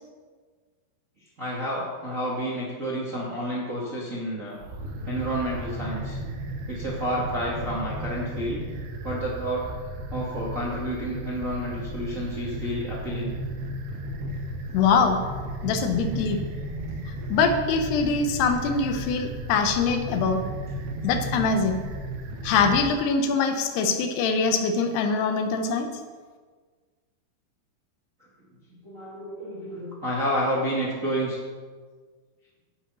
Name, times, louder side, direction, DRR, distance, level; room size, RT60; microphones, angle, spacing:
voice 1, 1.4-4.6 5.1-6.2 6.7-8.6 9.0-9.6 10.1-13.3 28.8-31.4, equal, 40° right, -5 dB, 1.2 m, -30 dB
sound 1, 4.6-22.9, right 1 dB, 80° right, 3.3 m, -34 dB
voice 2, 14.7-15.2 15.6-16.4 17.3-20.4 21.0-21.8 22.4-25.9, left 5 dB, 85° left, 6 dB, 3.1 m, -23 dB
11.5 x 8.4 x 5.6 m, 1.5 s
omnidirectional pair, 4.7 m